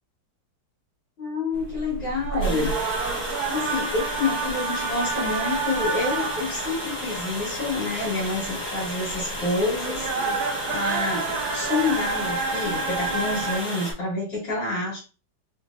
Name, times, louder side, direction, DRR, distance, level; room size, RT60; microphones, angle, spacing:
voice 1, 1.2-2.8 3.5-10.1 10.7-15.0, left 3 dB, 75° left, -6 dB, 2.5 m, -28 dB
sound 1, 1.5-13.6, right 4 dB, 70° right, 1.0 m, -30 dB
Water, 2.4-13.9, equal, 25° left, 1.1 m, -33 dB
4.4 x 2.7 x 2.5 m, 0.35 s
omnidirectional pair, 2.2 m